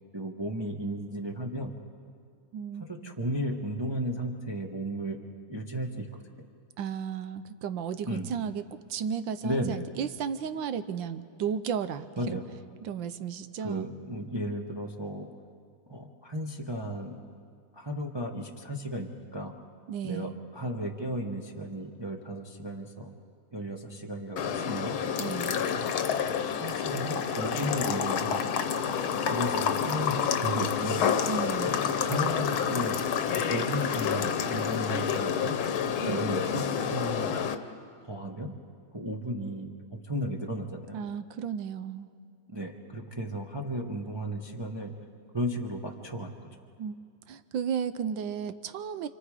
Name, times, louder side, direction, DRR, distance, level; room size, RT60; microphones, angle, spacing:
voice 1, 0.1-1.7 2.8-5.2 5.5-6.1 8.1-8.3 9.4-9.8 12.2-12.4 13.6-15.3 15.9-17.2 17.7-19.5 20.0-23.1 23.5-24.9 25.7-25.9 26.6-28.6 29.3-31.0 31.6-33.0 33.3-35.6 36.0-37.4 38.0-38.5 38.9-41.0 42.5-44.9 45.3-46.5, equal, 15° right, 1 dB, 0.9 m, -34 dB
voice 2, 2.5-3.2 6.8-8.6 8.9-12.4 12.8-13.9 19.9-20.3 25.2-25.7 31.3-31.9 36.0-36.2 40.9-42.1 46.8-46.9 47.3-49.1, right 7 dB, 70° right, 12 dB, 1.3 m, -34 dB
sound 1, 24.4-37.5, left 7 dB, 75° left, 1.7 m, -29 dB
29.0 x 25.5 x 4.9 m, 2.3 s
omnidirectional pair, 2.4 m